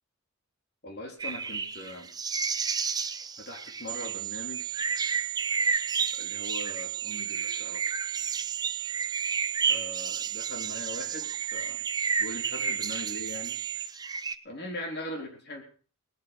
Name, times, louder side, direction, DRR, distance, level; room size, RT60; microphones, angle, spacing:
voice 1, 0.8-2.1 3.4-4.9 6.2-7.9 9.7-11.9 12.2-13.6 14.4-15.6, left 1 dB, 50° left, 3 dB, 3.6 m, -40 dB
sound 1, 1.2-14.3, right 5 dB, 20° right, 0.7 m, -32 dB
sound 2, 3.9-13.9, right 22 dB, 10° left, 4.1 m, -36 dB
19.5 x 9.8 x 6.6 m, 0.43 s
head